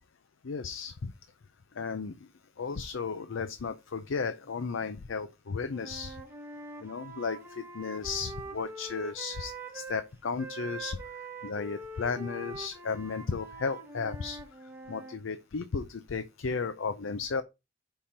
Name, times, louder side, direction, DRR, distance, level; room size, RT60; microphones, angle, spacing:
voice 1, 0.4-1.1 1.8-2.2 2.6-6.2 6.8-11.0 11.4-14.4 14.9-17.4, left 5 dB, 85° left, 0.6 m, -34 dB
Wind instrument woodwind instrument, 5.7-10.1 10.4-15.2, right 3 dB, 10° right, 1.3 m, -43 dB
5.7 x 4.3 x 5.0 m
head